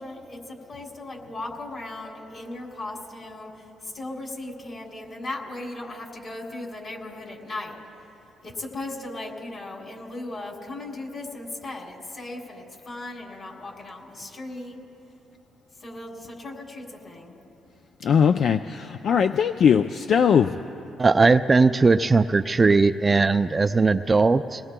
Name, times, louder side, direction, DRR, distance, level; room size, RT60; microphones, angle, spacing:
voice 1, 0.0-7.8 8.4-14.8 15.8-17.4 19.5-19.6 20.1-20.6, left 2 dB, 40° left, 0 dB, 3.1 m, -37 dB
voice 2, 18.0-20.5, left 7 dB, 60° left, 8 dB, 0.3 m, -20 dB
voice 3, 21.0-24.6, right 4 dB, 25° right, 9 dB, 0.3 m, -19 dB
28.5 x 19.5 x 2.2 m, 2.9 s
cardioid pair, 90°, 0 cm